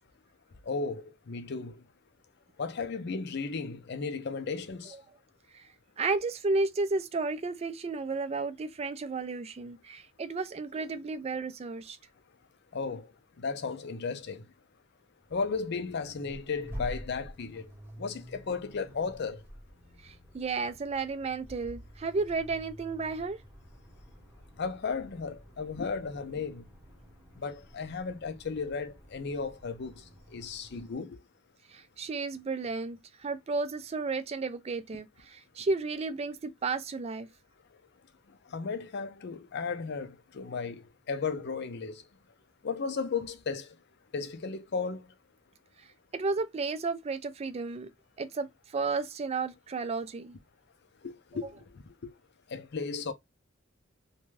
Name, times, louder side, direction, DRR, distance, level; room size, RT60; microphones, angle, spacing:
voice 1, 0.7-1.8 2.6-4.9 12.7-13.1 13.4-14.4 15.3-17.7 18.0-19.4 24.6-26.6 27.4-29.9 30.3-31.2 38.5-42.0 42.6-43.7 44.1-45.1 51.0-51.5 51.7-52.1 52.5-53.1, left 4 dB, 55° left, 0.5 m, -35 dB
voice 2, 6.0-12.0 20.0-23.4 31.7-37.3 45.8-47.9 48.2-50.4, right 3 dB, 30° right, 0.4 m, -33 dB
Accelerating revving vroom, 15.2-31.0, equal, 10° right, 0.9 m, -49 dB
2.5 x 2.2 x 3.1 m
head